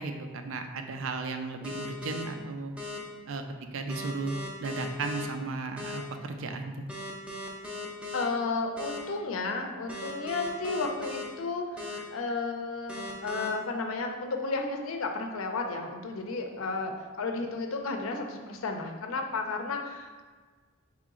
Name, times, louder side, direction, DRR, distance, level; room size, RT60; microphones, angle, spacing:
voice 1, 0.0-2.7 3.3-3.4 3.7-6.9, right 3 dB, 70° right, 6 dB, 0.4 m, -35 dB
sound 1, 1.6-2.2 2.8-3.0 3.9-5.2 5.8-6.0 6.9-8.2 8.8-9.0 9.9-11.2 11.8-12.0 12.9-13.5, left 2 dB, 5° right, 0.5 m, -38 dB
voice 2, 8.1-16.9 17.2-20.2, left 3 dB, 75° left, 4 dB, 0.5 m, -33 dB
4.0 x 3.0 x 3.7 m, 1.5 s
head